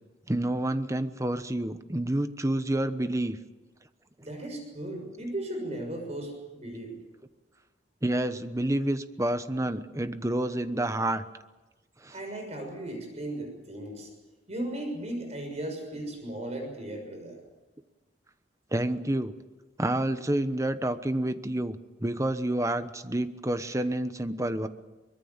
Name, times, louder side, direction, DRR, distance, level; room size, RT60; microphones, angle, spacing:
voice 1, 0.3-3.4 8.0-11.2 12.0-12.2 18.7-19.3 19.8-24.7, right 1 dB, 15° right, 11 dB, 1.1 m, -29 dB
voice 2, 4.2-7.0 12.1-14.1 14.5-17.4, right 1 dB, 40° right, 4 dB, 6.4 m, -36 dB
24.0 x 21.5 x 7.3 m, 1.1 s
head